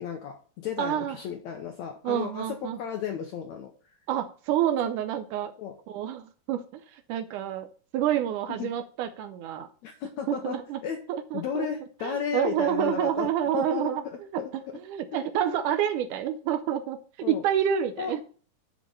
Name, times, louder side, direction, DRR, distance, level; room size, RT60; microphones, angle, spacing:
voice 1, 0.0-4.0 5.6-5.8 8.6-8.7 9.8-11.0 11.3-13.3 13.5-14.5 15.4-15.5 17.2-17.4 18.0-18.1, left 8 dB, 70° left, 3 dB, 1.8 m, -34 dB
voice 2, 0.8-1.2 2.0-2.8 4.1-5.5 5.9-7.7 7.9-9.7 10.3-10.8 11.3-11.7 12.0-14.4 14.8-17.0 17.3-18.2, right 10 dB, 80° right, 9 dB, 1.9 m, -28 dB
7.4 x 5.0 x 6.5 m, 0.41 s
omnidirectional pair, 3.9 m